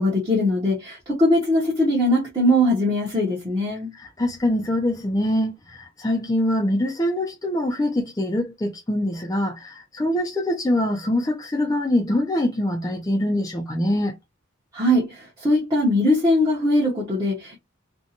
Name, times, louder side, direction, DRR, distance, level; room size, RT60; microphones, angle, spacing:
voice 1, 0.0-3.9 14.7-17.6, left 1 dB, 15° right, 0.7 m, -21 dB
voice 2, 3.9-14.1, left 1 dB, 15° left, 0.4 m, -24 dB
2.6 x 2.2 x 2.7 m
head